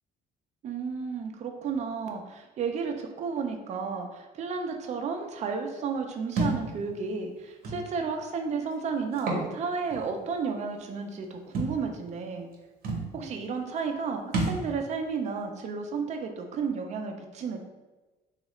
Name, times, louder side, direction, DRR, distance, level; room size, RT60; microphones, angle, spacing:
voice 1, 0.6-12.5 13.1-17.6, right 5 dB, 45° right, 4 dB, 0.4 m, -32 dB
Thump thud, 6.4-6.6 7.6-7.8 9.1-9.5 9.9-10.0 11.5-11.8 12.5-12.6 12.8-13.1 14.3-14.6, right 2 dB, 60° right, 0.8 m, -28 dB
2.9 x 2.4 x 3.0 m, 1.2 s
cardioid pair, 110°, 17 cm